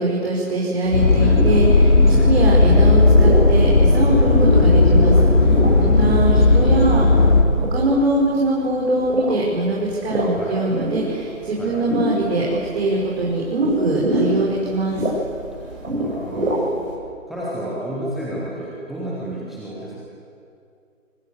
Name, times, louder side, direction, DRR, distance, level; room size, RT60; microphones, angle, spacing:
voice 1, 0.0-5.1 5.8-7.0 7.7-12.4 12.7-15.0, right 2 dB, 50° right, -3 dB, 5.7 m, -22 dB
sound 1, 0.8-17.0, right 1 dB, 75° right, 7.9 m, -28 dB
sound 2, 0.9-7.4, left 2 dB, 65° left, 4.5 m, -14 dB
voice 2, 1.0-1.4 2.1-2.5 4.2-4.4 5.6-6.1 10.3-10.6 11.6-11.8 14.1-14.3 15.5-16.7 17.3-20.0, right 1 dB, ahead, -8 dB, 0.7 m, -32 dB
25.5 x 24.5 x 8.1 m, 2.5 s
figure-of-eight pair, 150°, 41 cm